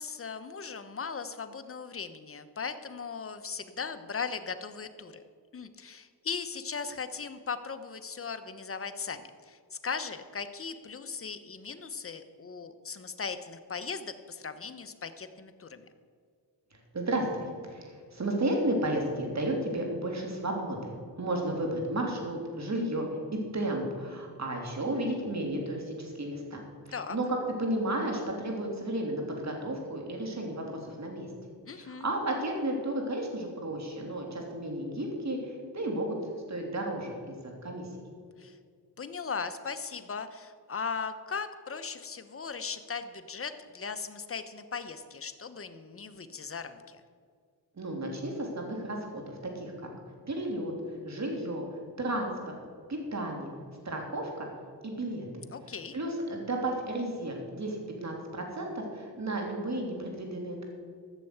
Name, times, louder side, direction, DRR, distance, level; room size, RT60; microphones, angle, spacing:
voice 1, 0.0-5.2 5.5-15.9 26.9-27.2 31.6-32.1 38.4-38.6 39.0-47.0 55.5-56.0, left 5 dB, 30° left, 10 dB, 1.0 m, -38 dB
voice 2, 16.9-31.3 31.7-36.2 36.5-37.9 47.8-49.9 50.3-50.7 51.0-51.6 52.0-52.6 52.9-53.5 53.8-54.5 54.8-55.3 55.9-60.6, right 1 dB, 40° right, 1 dB, 3.3 m, -33 dB
13.5 x 6.9 x 8.1 m, 2.1 s
cardioid pair, 75°, 42 cm